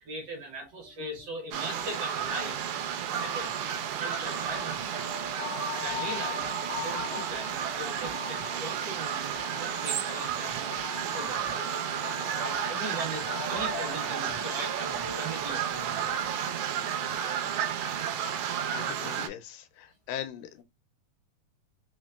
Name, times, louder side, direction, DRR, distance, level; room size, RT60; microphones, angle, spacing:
voice 1, 0.0-2.6 3.2-3.5 3.9-5.0 5.7-12.0 12.4-16.1, right 2 dB, 60° right, 1.7 m, -40 dB
sound 1, 0.9-2.0 2.3-2.5 2.8-17.1, left 3 dB, 65° left, 1.0 m, -42 dB
sound 2, 1.5-19.3, right 8 dB, 80° right, 1.8 m, -32 dB
voice 2, 18.0-18.4 18.7-20.6, left 10 dB, 80° left, 2.2 m, -41 dB
5.2 x 2.1 x 2.3 m
omnidirectional pair, 3.8 m